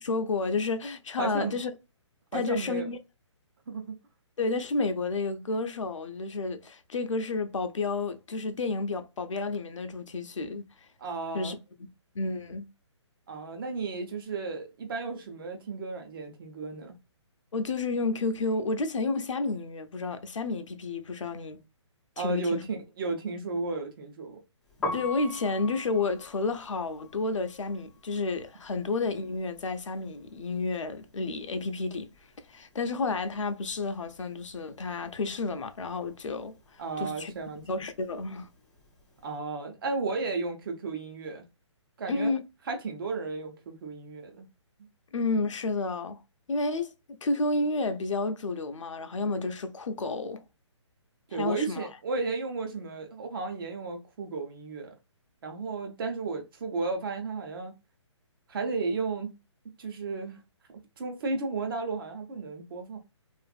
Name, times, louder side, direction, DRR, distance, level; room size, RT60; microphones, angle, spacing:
voice 1, 0.0-1.7 2.3-3.0 4.4-10.9 11.3-11.9 12.1-12.6 17.5-21.6 22.2-22.6 24.9-32.1 32.5-38.5 42.1-42.4 45.1-46.2 46.5-50.4 51.3-51.9, left 3 dB, 85° left, 0.5 m, -31 dB
voice 2, 1.2-1.6 2.3-2.9 3.7-4.0 11.0-11.5 13.3-17.0 22.2-24.4 36.8-37.6 39.2-41.4 42.0-42.3 42.7-44.5 51.3-54.9 55.4-57.7 58.5-59.3 59.8-60.4 60.7-63.0, right 4 dB, 45° right, 0.8 m, -33 dB
Piano, 24.7-30.6 30.9-32.5 32.7-39.2, left 2 dB, 5° left, 0.3 m, -42 dB
2.5 x 2.5 x 2.3 m
hypercardioid pair, 150°, 16 cm